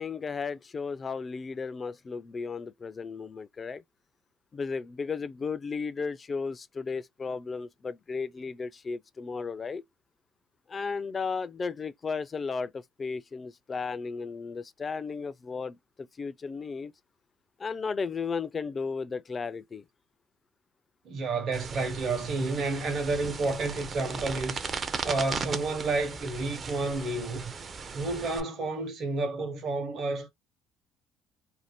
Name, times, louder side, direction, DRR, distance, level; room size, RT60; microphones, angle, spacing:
voice 1, 0.0-3.8 4.5-9.8 10.7-16.9 17.6-19.8, left 5 dB, 30° left, 0.3 m, -34 dB
voice 2, 21.0-27.4 27.9-30.3, right 3 dB, 55° right, 0.8 m, -30 dB
sound 1, 21.5-28.4, right 5 dB, 35° right, 0.4 m, -37 dB
2.6 x 2.1 x 3.3 m
cardioid pair, 100°, 0 cm